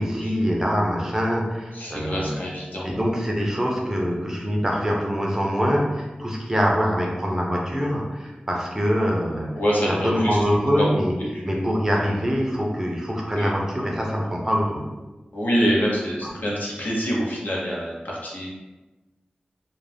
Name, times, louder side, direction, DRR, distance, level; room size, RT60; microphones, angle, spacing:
voice 1, 0.0-2.4 2.8-9.5 10.0-11.1 11.4-14.8 16.2-16.3, equal, 15° right, -2 dB, 0.5 m, -24 dB
voice 2, 1.7-2.9 9.5-10.4 11.3-11.8 13.3-13.6 15.3-18.5, equal, 60° left, -5 dB, 0.8 m, -26 dB
2.4 x 2.1 x 3.2 m, 1.2 s
wide cardioid pair, 85°, 3 cm